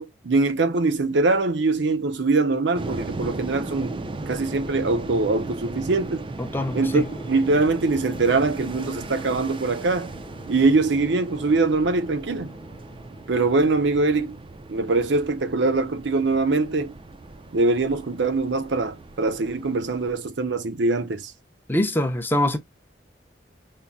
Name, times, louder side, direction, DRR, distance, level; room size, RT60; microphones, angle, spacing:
voice 1, 0.0-6.3 6.7-10.1 10.5-12.6 13.3-14.4 14.7-16.9 17.5-21.3, right 3 dB, 80° right, 0.7 m, -23 dB
sound 1, 2.7-20.1, right 2 dB, 30° right, 0.4 m, -37 dB
voice 2, 6.4-7.1 21.7-22.6, left 1 dB, 10° left, 0.6 m, -24 dB
sound 2, 6.6-14.0, left 1 dB, 30° left, 1.0 m, -45 dB
5.5 x 2.1 x 2.3 m
head